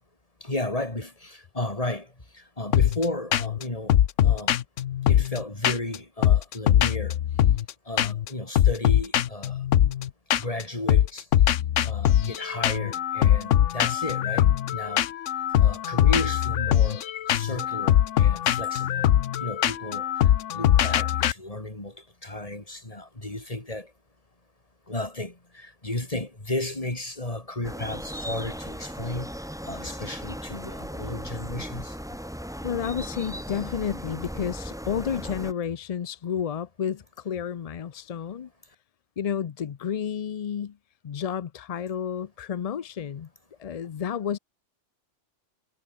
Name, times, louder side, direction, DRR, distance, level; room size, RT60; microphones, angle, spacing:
voice 1, 0.4-2.1 2.6-4.0 4.2-4.6 5.1-7.1 7.9-9.5 10.4-11.2 11.8-14.5 14.7-15.0 15.6-19.1 19.4-20.1 20.5-21.9 22.2-23.9 24.9-29.3 29.7-31.9, left 2 dB, 30° left, 3.5 m, -33 dB
sound 1, 2.7-3.0 3.3-3.6 3.9-6.0 6.2-7.7 8.0-8.3 8.5-10.6 10.9-21.3, left 11 dB, 85° left, 1.1 m, -22 dB
sound 2, 27.6-35.5, equal, 5° right, 2.7 m, -37 dB
voice 2, 32.6-38.5 39.2-40.8 41.0-43.3 43.6-44.4, left 8 dB, 50° left, 0.4 m, -31 dB
omnidirectional pair, 1.2 m